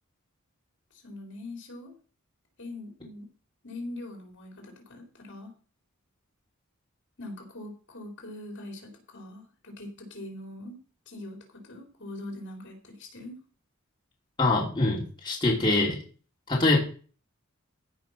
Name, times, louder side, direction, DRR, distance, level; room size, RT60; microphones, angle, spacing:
voice 1, 1.0-1.9 2.6-3.3 3.6-5.5 7.2-10.8 11.1-13.4, left 1 dB, 60° left, 3 dB, 3.6 m, -42 dB
voice 2, 14.4-16.0 16.5-16.8, left 2 dB, 20° left, -3 dB, 2.8 m, -24 dB
15.5 x 5.2 x 5.7 m, 0.39 s
head